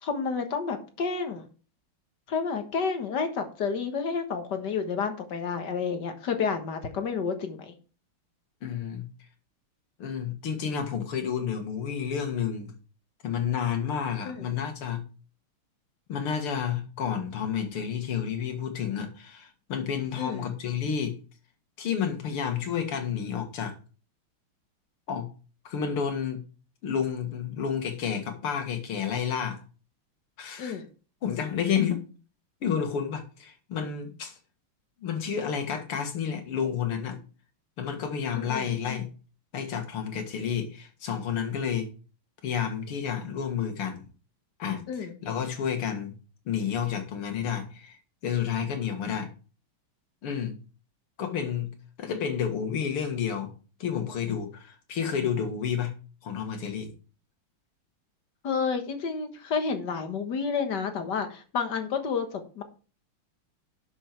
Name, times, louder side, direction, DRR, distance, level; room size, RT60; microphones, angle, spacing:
voice 1, 0.0-1.4 2.3-7.7 14.2-14.5 20.2-20.5 30.6-30.9 38.3-38.7 44.9-45.1 58.4-62.6, left 5 dB, 55° left, 1.9 m, -30 dB
voice 2, 8.6-9.1 10.0-12.7 13.2-15.0 16.1-21.2 21.8-23.8 25.1-25.3 25.6-26.4 26.8-29.6 30.4-30.8 31.2-32.0 32.6-34.4 35.0-37.2 37.8-39.1 39.5-41.9 42.4-44.0 44.6-46.2 46.5-49.3 50.2-50.6 51.2-51.7 52.0-53.5 53.8-55.9 56.2-56.9, left 7 dB, 80° left, 2.7 m, -30 dB
11.0 x 6.6 x 4.5 m
omnidirectional pair, 2.4 m